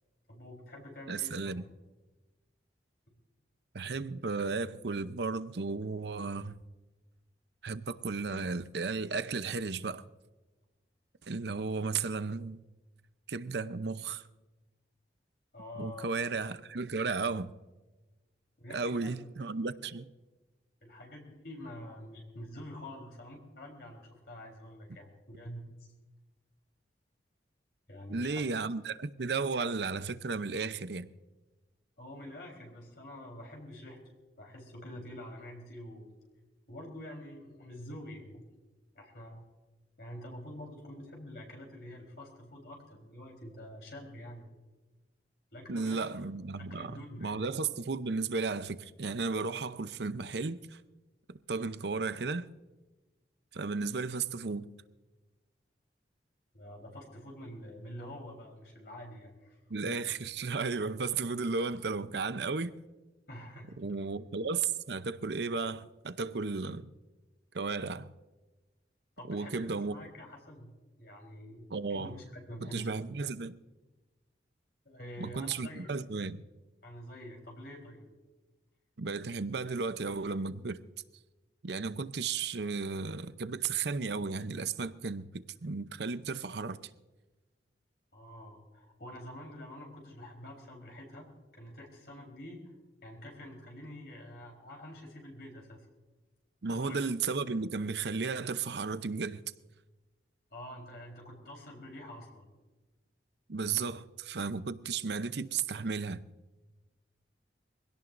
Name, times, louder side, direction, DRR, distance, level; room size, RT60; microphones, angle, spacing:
voice 1, 0.3-1.6 15.5-16.1 18.6-19.2 20.8-25.6 27.9-28.5 32.0-34.0 34.4-36.1 36.7-38.5 38.9-39.4 40.0-44.5 45.5-46.3 46.7-47.4 56.5-59.9 63.3-63.7 69.2-72.9 74.8-75.9 76.8-78.1 88.1-91.3 91.5-92.7 93.0-95.9 96.7-97.0 97.2-97.3 100.5-102.5, left 1 dB, 60° left, 4.0 m, -47 dB
voice 2, 1.1-1.6 3.7-6.6 7.6-10.0 11.2-12.6 13.3-14.2 15.8-17.5 18.7-20.1 28.1-31.1 45.7-50.8 51.3-52.5 53.5-54.7 59.7-62.7 63.8-66.9 67.5-68.1 69.3-70.0 71.7-72.1 72.6-73.6 75.2-76.4 79.0-80.8 81.6-86.9 96.6-99.4 103.5-106.2, right 4 dB, 70° right, 0.7 m, -34 dB
24.0 x 17.0 x 2.6 m
head